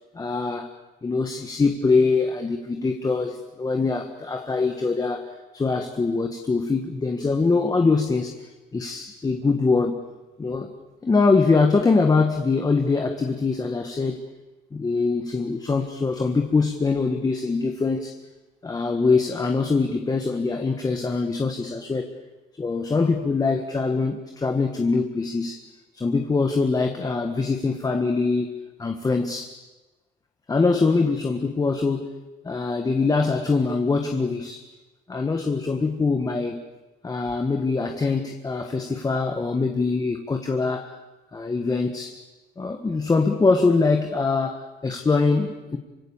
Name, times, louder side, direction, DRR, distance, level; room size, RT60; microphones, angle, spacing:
voice 1, 0.1-0.7 1.0-10.0 10.4-10.7 11.0-14.2 14.7-18.2 18.6-22.1 22.6-25.6 25.9-29.5 30.5-32.1 32.4-34.6 35.1-36.6 37.0-41.0 41.3-42.2 42.6-45.8, left 4 dB, 20° left, 5 dB, 1.7 m, -23 dB
26.5 x 25.5 x 7.4 m, 1.1 s
cardioid pair, 110°, 17 cm